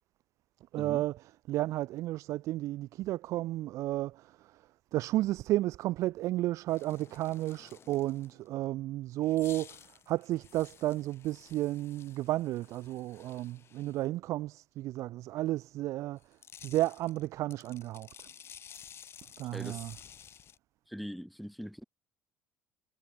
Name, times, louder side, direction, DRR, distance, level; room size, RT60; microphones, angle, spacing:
voice 1, 0.7-1.1 1.5-4.5 4.9-9.8 10.1-16.2 16.6-18.3 19.4-19.9, right 16 dB, 60° right, 1.3 m, -32 dB
sound 1, 6.7-8.5 9.2-14.1 16.2-20.6, left 8 dB, 45° left, 6.5 m, -53 dB
voice 2, 19.5-19.9 20.9-21.8, equal, ahead, 2.9 m, -42 dB
hypercardioid pair, 65°, 6 cm